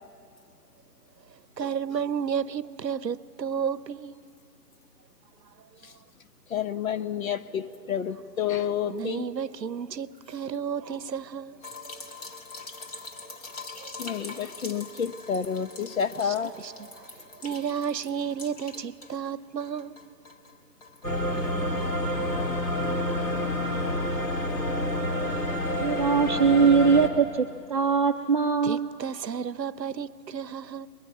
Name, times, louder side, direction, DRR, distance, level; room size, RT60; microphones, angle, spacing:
voice 1, 1.6-4.2 8.9-11.6 13.8-13.9 16.2-16.3 16.6-16.7 17.0-20.0 28.6-30.9, right 7 dB, 80° right, 0.8 m, -32 dB
voice 2, 6.5-9.3 14.0-16.5, left 8 dB, 55° left, 1.0 m, -30 dB
sound 1, 11.6-19.3 19.6-21.1 21.4-21.5 21.8-21.9, left 3 dB, 25° left, 1.1 m, -44 dB
sound 2, 21.0-27.1, left 1 dB, 90° left, 3.4 m, -28 dB
voice 3, 25.8-28.9, right 5 dB, 30° right, 0.5 m, -22 dB
22.5 x 21.0 x 9.3 m
figure-of-eight pair, 150°, 49 cm